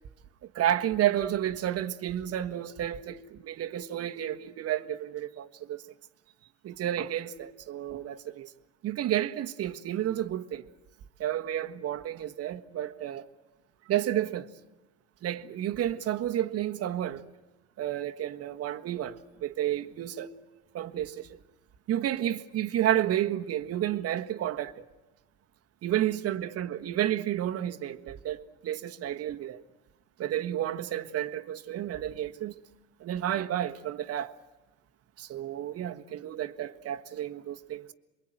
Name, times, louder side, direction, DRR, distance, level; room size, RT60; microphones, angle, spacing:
voice 1, 0.5-5.8 6.6-8.5 8.8-10.6 11.2-13.2 13.9-14.5 15.2-17.3 17.8-20.3 20.7-21.4 21.9-24.9 25.8-29.6 30.2-32.5 33.0-34.3 35.2-37.9, right 12 dB, 35° right, 1.5 m, -31 dB
28.0 x 23.0 x 9.0 m
supercardioid pair, 115°, 39 cm